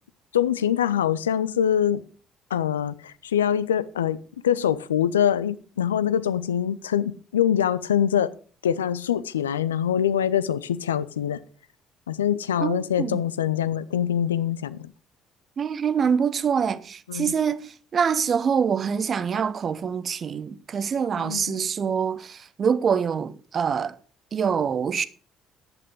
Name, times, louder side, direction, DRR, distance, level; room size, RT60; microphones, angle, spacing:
voice 1, 0.3-2.0 2.5-4.2 4.4-8.3 8.6-11.4 12.1-14.9 17.1-17.3 21.2-21.7, left 9 dB, 80° left, 0.5 m, -24 dB
voice 2, 12.6-13.3 15.6-24.0 24.3-25.1, right 7 dB, 40° right, 0.8 m, -25 dB
10.5 x 8.8 x 5.2 m
figure-of-eight pair, 50°, 0 cm